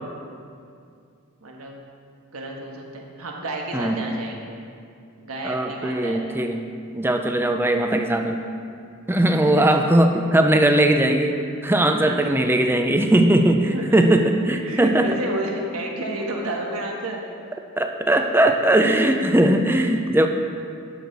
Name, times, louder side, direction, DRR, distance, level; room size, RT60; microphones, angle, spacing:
voice 1, 1.4-1.8 2.3-4.5 5.2-6.2 9.5-9.7 12.0-12.3 12.6-12.7 13.7-14.2 14.6-17.2, right 1 dB, 85° right, 0 dB, 1.3 m, -31 dB
voice 2, 3.7-4.0 5.4-6.6 6.9-8.4 9.1-11.4 11.6-15.1 17.8-20.3, right 1 dB, 10° right, 5 dB, 0.4 m, -19 dB
11.0 x 6.6 x 4.0 m, 2.3 s
head